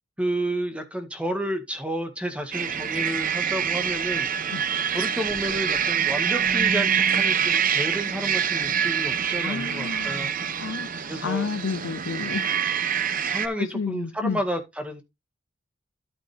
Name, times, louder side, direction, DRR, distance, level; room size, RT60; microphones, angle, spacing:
voice 1, 0.2-10.3 11.1-11.5 13.2-15.0, equal, 5° right, 1.8 m, -31 dB
sound 1, 2.5-13.5, right 7 dB, 45° right, 0.9 m, -25 dB
voice 2, 9.4-10.2 10.6-12.5 13.6-14.4, left 4 dB, 80° left, 0.6 m, -30 dB
13.0 x 5.2 x 3.4 m
head